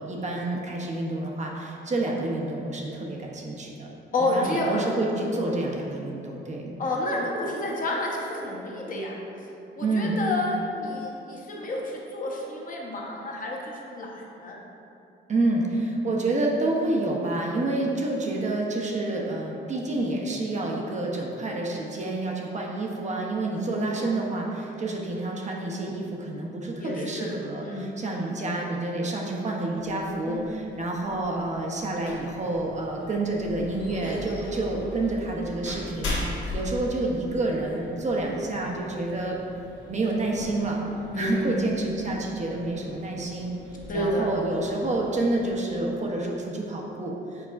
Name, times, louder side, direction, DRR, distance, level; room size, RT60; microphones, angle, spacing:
voice 1, 0.0-3.9 4.3-6.8 9.8-10.2 15.3-39.4 39.9-40.8 41.1-43.5 43.9-47.5, right 2 dB, 35° right, -1 dB, 0.6 m, -28 dB
voice 2, 4.1-4.8 5.2-5.3 6.8-9.5 9.8-14.6 23.7-24.2 26.8-27.3 27.6-27.9 30.3-30.6 34.0-34.2 41.1-41.6 43.9-44.3, left 1 dB, 45° left, -2 dB, 0.8 m, -30 dB
sound 1, 29.7-45.6, left 2 dB, 70° left, 1.1 m, -40 dB
4.6 x 4.1 x 2.4 m, 2.8 s
cardioid pair, 90°, 20 cm